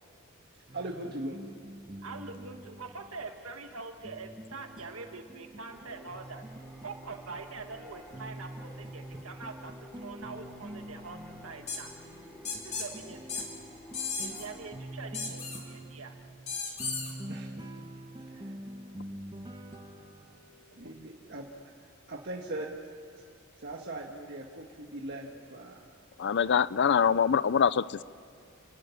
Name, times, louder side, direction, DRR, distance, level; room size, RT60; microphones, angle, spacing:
sound 1, 0.7-20.5, right 1 dB, 20° right, 1.5 m, -46 dB
voice 1, 0.7-1.4 17.3-17.5 18.3-18.5 20.7-21.5 22.1-22.7 23.1-23.2 23.6-25.9, right 1 dB, 55° right, 0 dB, 1.7 m, -40 dB
voice 2, 2.0-6.4 6.8-9.7 10.0-11.9 12.6-13.5 14.2-16.1 20.8-20.9, right 4 dB, 90° right, 5 dB, 1.7 m, -44 dB
sound 2, 5.7-15.2, equal, 5° left, 3.7 m, -52 dB
sound 3, 11.7-11.8 12.5-12.9 13.3-13.5 13.9-14.5 15.1-15.6 16.5-17.1, left 5 dB, 35° left, 3.3 m, -35 dB
voice 3, 26.2-28.0, left 7 dB, 55° left, 18 dB, 0.5 m, -24 dB
29.5 x 13.0 x 9.6 m, 2.5 s
head